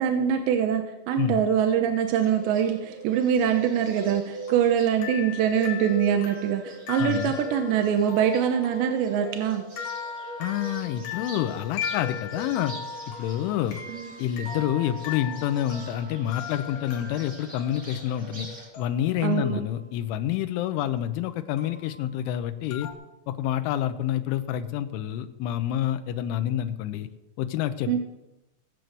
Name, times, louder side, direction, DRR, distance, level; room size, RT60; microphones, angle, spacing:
voice 1, 0.0-9.6 13.9-14.1 19.2-19.6 27.9-28.0, right 8 dB, 75° right, 5 dB, 2.8 m, -24 dB
Bird, 2.2-18.7, right 1 dB, 20° right, 2.9 m, -43 dB
sound 1, 3.5-19.9 21.6-22.1 22.7-22.9, left 6 dB, 60° left, 3.7 m, -39 dB
voice 2, 7.0-7.3 10.4-12.8 13.1-13.8 14.2-18.5 18.8-22.9 23.3-27.1 27.4-28.0, left 11 dB, 85° left, 8 dB, 3.1 m, -28 dB
18.5 x 7.7 x 6.6 m, 0.98 s
omnidirectional pair, 5.9 m